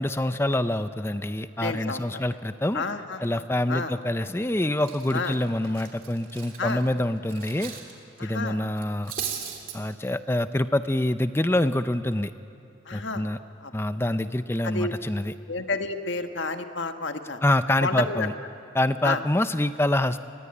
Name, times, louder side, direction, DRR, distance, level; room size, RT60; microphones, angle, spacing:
voice 1, 0.0-2.8 3.2-7.7 8.2-9.1 9.7-12.3 12.9-13.4 13.7-15.3 17.4-18.3 18.7-20.2, left 1 dB, 10° left, 11 dB, 0.6 m, -26 dB
voice 2, 1.6-2.2 2.7-3.4 3.7-3.9 5.1-5.3 6.6-6.8 8.2-8.6 12.9-13.2 13.6-13.7 14.6-14.9 15.5-17.4 17.8-18.3 19.0-19.2, left 3 dB, 65° left, 6 dB, 1.5 m, -30 dB
Cutlery silverware, 4.2-4.4 4.8-7.9 8.2-8.4 8.8-9.8, right 8 dB, 45° right, 3.1 m, -37 dB
27.5 x 21.5 x 9.9 m, 2.6 s
head